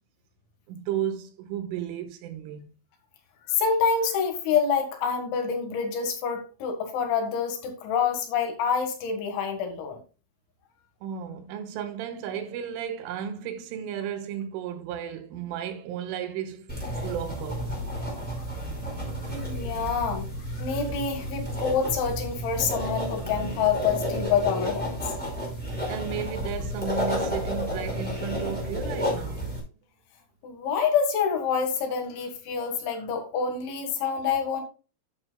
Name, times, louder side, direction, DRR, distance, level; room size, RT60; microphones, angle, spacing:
voice 1, 0.7-2.6 11.0-16.7 17.0-17.8 25.9-29.5, right 9 dB, 85° right, 3.6 m, -34 dB
voice 2, 3.5-10.0 19.3-20.3 20.6-25.1 30.4-34.6, left 6 dB, 70° left, 3.9 m, -27 dB
sound 1, 16.7-29.6, equal, ahead, 4.4 m, -31 dB
11.5 x 8.5 x 2.3 m
omnidirectional pair, 5.6 m